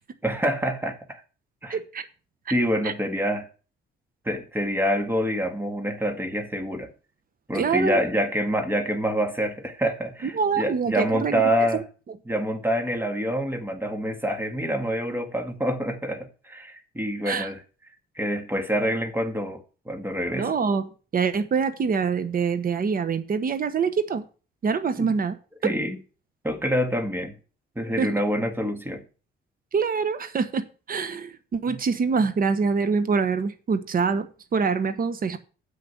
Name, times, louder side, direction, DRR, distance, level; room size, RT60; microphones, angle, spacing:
voice 1, 0.2-1.2 1.6-1.8 2.5-3.5 4.2-6.9 7.5-11.8 12.3-17.6 18.1-20.5 25.0-25.1 25.6-26.0 26.4-27.3 27.7-29.0 31.7-31.8, equal, 10° right, 1.7 m, -26 dB
voice 2, 1.7-2.0 2.8-2.9 7.5-8.0 10.2-11.7 17.3-17.5 20.3-24.2 24.6-25.4 25.6-25.7 28.0-28.1 29.7-35.4, right 5 dB, 45° right, 1.1 m, -25 dB
7.6 x 6.4 x 6.8 m
cardioid pair, 90°, 20 cm